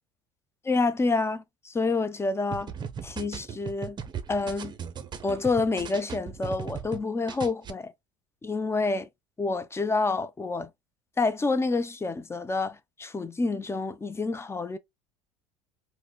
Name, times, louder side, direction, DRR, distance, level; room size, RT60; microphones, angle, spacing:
voice 1, 0.6-2.7 3.0-4.0 4.3-4.7 5.2-7.9 8.4-9.1 9.4-10.7 11.2-14.8, left 3 dB, 20° left, 0.5 m, -28 dB
sound 1, 2.5-7.0 7.3-7.7, right 7 dB, 30° right, 0.6 m, -37 dB
4.8 x 2.1 x 2.2 m
hypercardioid pair, 75°, 15 cm